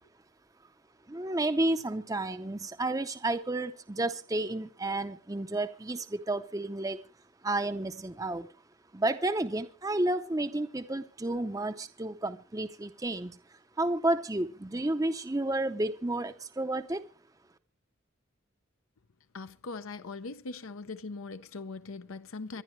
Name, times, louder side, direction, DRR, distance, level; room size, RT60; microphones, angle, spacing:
voice 1, 1.1-7.0 7.4-8.5 8.9-13.4 13.8-17.0, right 2 dB, 15° right, 0.6 m, -31 dB
voice 2, 19.3-22.6, left 3 dB, 80° left, 0.7 m, -40 dB
25.5 x 11.0 x 3.2 m
head